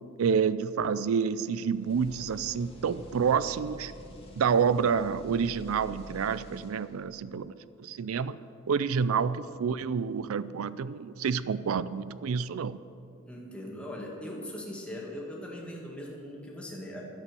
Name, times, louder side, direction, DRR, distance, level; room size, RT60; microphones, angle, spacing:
voice 1, 0.2-3.9 4.3-8.4 8.7-12.8, right 6 dB, 85° right, 17 dB, 0.4 m, -28 dB
sound 1, 1.7-7.2, equal, 30° left, 1.8 m, -48 dB
voice 2, 8.8-9.1 13.3-17.1, left 1 dB, 5° left, -3 dB, 1.8 m, -40 dB
11.5 x 8.3 x 6.8 m, 2.7 s
head